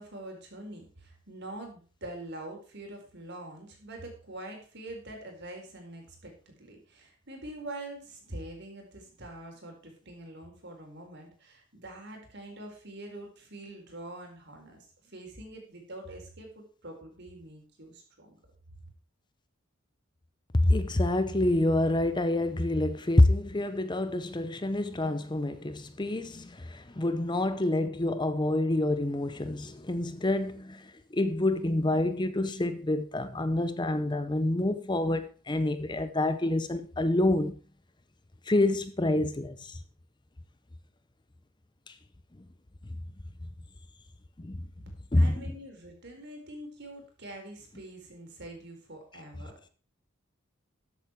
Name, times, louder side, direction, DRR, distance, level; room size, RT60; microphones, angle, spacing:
voice 1, 0.0-18.4 44.8-49.7, right 1 dB, 55° right, 4.4 m, -45 dB
voice 2, 20.6-30.8 31.1-37.5 38.5-39.8 41.9-42.0 44.4-44.7 45.1-45.4, left 1 dB, 20° left, 0.7 m, -27 dB
13.5 x 8.2 x 4.6 m
head